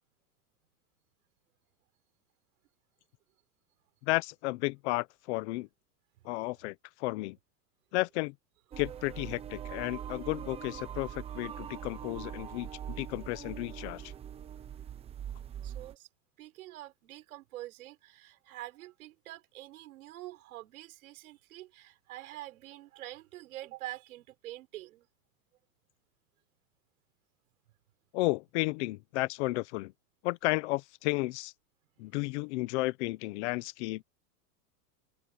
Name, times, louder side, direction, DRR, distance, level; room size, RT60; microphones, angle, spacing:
voice 1, 4.0-5.7 6.2-7.4 7.9-8.3 8.8-14.1 28.1-29.9 30.2-31.5 32.0-34.0, left 22 dB, 50° left, 1.0 m, -33 dB
sound 1, 8.7-15.9, right 9 dB, 15° right, 0.8 m, -42 dB
voice 2, 15.6-16.1 16.4-25.1, right 16 dB, 80° right, 5.4 m, -46 dB
open air
supercardioid pair, 165°, 42 cm